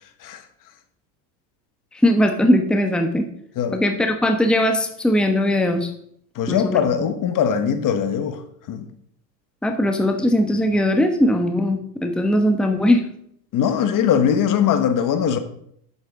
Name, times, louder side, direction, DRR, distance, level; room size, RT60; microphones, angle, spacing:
voice 1, 1.9-3.3 3.7-5.9 6.5-6.8 9.6-13.0, left 1 dB, ahead, 1.0 m, -19 dB
voice 2, 6.3-8.4 8.7-8.9 13.5-15.4, left 8 dB, 40° left, 1.3 m, -21 dB
10.0 x 8.7 x 3.7 m
hypercardioid pair, 100°, 48 cm